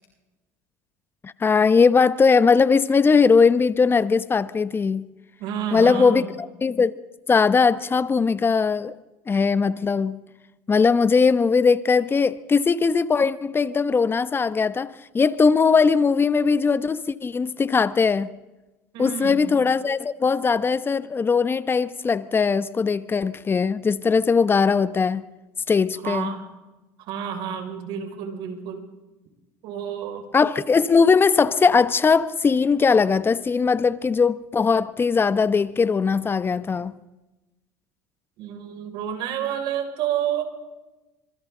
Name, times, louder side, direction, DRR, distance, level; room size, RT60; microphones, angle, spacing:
voice 1, 1.2-5.1 5.7-6.9 7.3-8.9 9.3-10.2 10.7-18.3 19.0-25.2 25.7-26.3 30.3-36.9, left 5 dB, 25° left, 1.0 m, -20 dB
voice 2, 5.4-6.3 18.9-19.5 26.0-26.4 27.1-28.9 29.6-30.2 38.4-40.4, right 9 dB, 65° right, 5.9 m, -29 dB
28.5 x 26.0 x 3.9 m
supercardioid pair, 85°, 9 cm